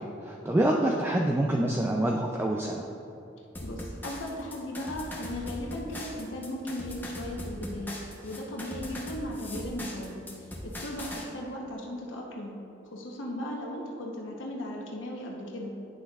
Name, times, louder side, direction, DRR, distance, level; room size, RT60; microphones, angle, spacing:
voice 1, 0.0-2.9, right 1 dB, 10° right, -1 dB, 0.3 m, -26 dB
sound 1, 3.5-11.2, left 1 dB, 10° left, 0.8 m, -40 dB
voice 2, 3.6-8.0 8.2-12.6 12.9-15.7, left 1 dB, 85° left, -1 dB, 0.9 m, -37 dB
10.0 x 6.4 x 2.4 m, 2.8 s
head